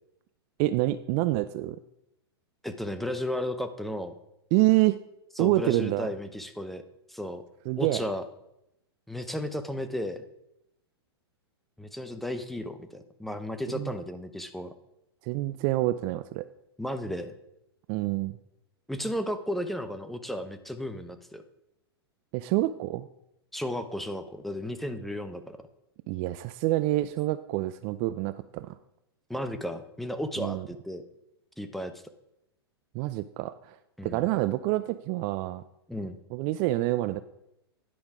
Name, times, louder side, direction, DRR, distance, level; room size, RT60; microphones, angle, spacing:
voice 1, 0.6-1.8 4.5-5.0 5.4-6.1 7.7-8.0 13.7-13.9 15.2-16.5 17.9-18.3 22.3-23.1 26.1-28.7 30.4-30.7 32.9-33.8 34.0-35.6 36.3-37.2, right 17 dB, 40° right, 14 dB, 0.3 m, -27 dB
voice 2, 2.6-4.1 5.4-6.8 7.1-7.4 7.8-8.2 9.1-10.2 11.8-14.7 16.8-17.3 18.9-21.4 23.5-25.6 29.3-31.0 31.6-31.9 34.0-34.2 35.9-36.2, left 1 dB, ahead, 8 dB, 0.7 m, -34 dB
10.5 x 5.2 x 4.9 m, 0.84 s
hypercardioid pair, 105°, 14 cm